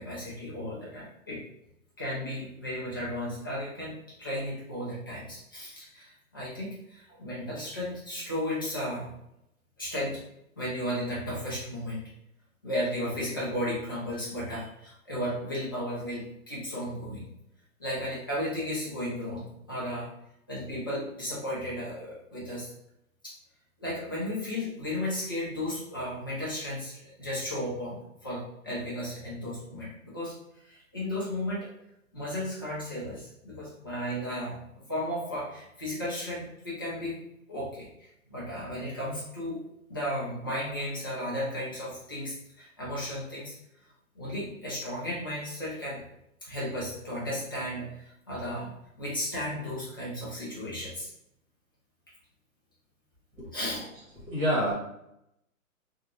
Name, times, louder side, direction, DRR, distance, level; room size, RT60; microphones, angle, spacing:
voice 1, 0.0-1.4 2.0-3.9 4.2-9.1 9.8-10.2 10.6-12.0 12.6-17.2 17.8-20.1 20.5-22.7 23.2-23.3 23.8-29.9 30.1-30.3 30.6-31.7 32.1-37.2 37.5-39.6 39.9-43.5 44.1-46.0 46.4-51.1 53.5-53.9, left 1 dB, 15° left, -8 dB, 0.4 m, -34 dB
voice 2, 54.3-54.7, equal, 25° right, -5 dB, 1.0 m, -27 dB
3.6 x 2.3 x 2.4 m, 0.80 s
hypercardioid pair, 145°, 43 cm